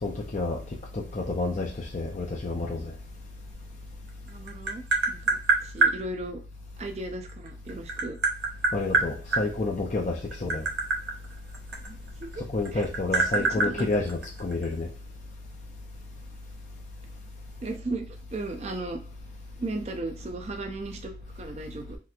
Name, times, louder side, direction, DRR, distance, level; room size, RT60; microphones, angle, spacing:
voice 1, 0.0-0.6 0.9-2.9 8.7-10.7 12.5-14.9, left 2 dB, 40° left, 0.4 m, -29 dB
Tap, 4.1-6.0 7.3-9.4 10.2-12.3 12.6-14.6, right 3 dB, 80° right, 0.6 m, -25 dB
voice 2, 4.3-6.4 6.8-8.2 11.8-12.4 12.7-13.9 17.6-19.0 19.6-22.0, right 2 dB, 35° right, 0.4 m, -36 dB
3.1 x 2.9 x 2.4 m
head